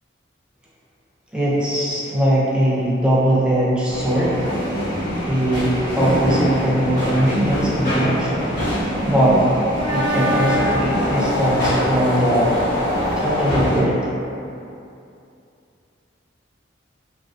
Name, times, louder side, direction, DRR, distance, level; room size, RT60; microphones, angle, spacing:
voice 1, 1.3-4.5 5.3-8.5 9.1-9.5 9.9-12.6 13.2-14.1, equal, 5° right, -7 dB, 0.3 m, -20 dB
sound 1, 3.9-13.8, equal, 60° left, 1.2 m, -23 dB
3.2 x 2.5 x 2.4 m, 2.6 s
head